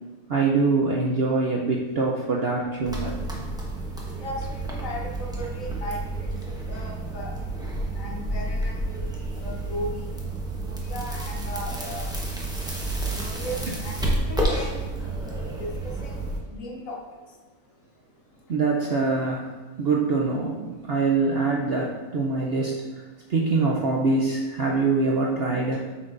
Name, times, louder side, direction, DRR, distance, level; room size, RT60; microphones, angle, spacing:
voice 1, 0.3-3.1 18.5-19.5 19.8-23.0 23.3-25.9, right 3 dB, 60° right, -2 dB, 0.6 m, -24 dB
sound 1, 2.8-16.4, right 2 dB, 5° right, 0.7 m, -30 dB
voice 2, 4.2-7.3 7.9-9.1 9.4-10.0 10.6-12.1 13.1-14.9 15.6-17.0 25.7-25.8, equal, 60° left, 0 dB, 1.4 m, -37 dB
7.9 x 6.0 x 2.5 m, 1.3 s
omnidirectional pair, 1.6 m